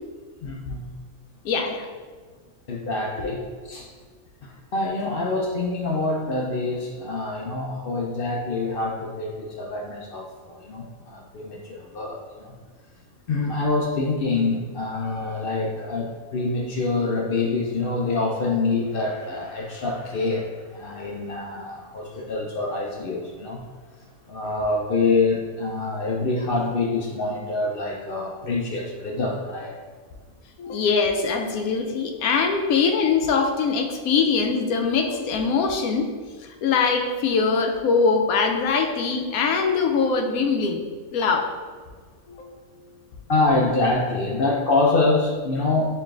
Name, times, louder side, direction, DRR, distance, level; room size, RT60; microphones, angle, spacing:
voice 1, 0.4-0.9 2.7-3.4 3.6-3.9 4.4-12.5 13.3-23.6 24.3-29.7 43.3-45.9, left 3 dB, 60° left, -1 dB, 0.6 m, -25 dB
voice 2, 1.4-1.9 3.2-3.3 30.6-36.1 36.6-40.8 41.1-41.5 42.3-42.6, left 5 dB, 85° left, 3 dB, 1.0 m, -22 dB
6.7 x 3.0 x 2.4 m, 1.5 s
omnidirectional pair, 1.5 m